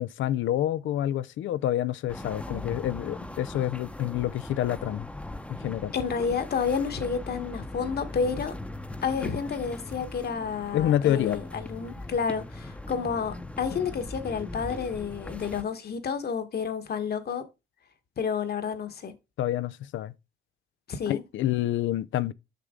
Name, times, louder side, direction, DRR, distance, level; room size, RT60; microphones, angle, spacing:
voice 1, 0.0-5.1 5.5-5.9 10.7-11.4 19.4-20.1 21.1-22.3, left 12 dB, 75° left, 0.6 m, -28 dB
sound 1, 2.1-15.6, left 1 dB, 5° left, 0.9 m, -40 dB
voice 2, 5.9-8.5 9.0-17.4 18.2-19.1 20.9-21.2, left 6 dB, 55° left, 1.4 m, -30 dB
6.8 x 6.1 x 3.7 m
cardioid pair, 90°, 20 cm